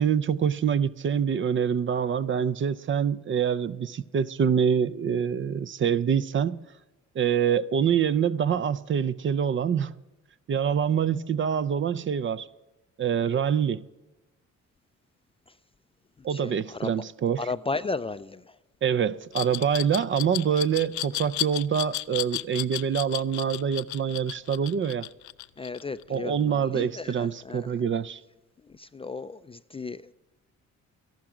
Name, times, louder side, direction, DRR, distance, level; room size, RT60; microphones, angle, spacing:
voice 1, 0.0-6.6 7.2-10.0 10.5-12.5 13.0-13.8 16.2-17.4 18.8-25.1 26.1-28.2, right 7 dB, 40° right, 0.5 m, -25 dB
voice 2, 16.3-16.9 17.4-18.4 25.6-27.6 28.6-30.1, left 3 dB, 20° left, 0.4 m, -34 dB
Glass, 19.3-26.2, left 15 dB, 70° left, 0.5 m, -33 dB
13.5 x 12.0 x 5.0 m
cardioid pair, 90°, 30 cm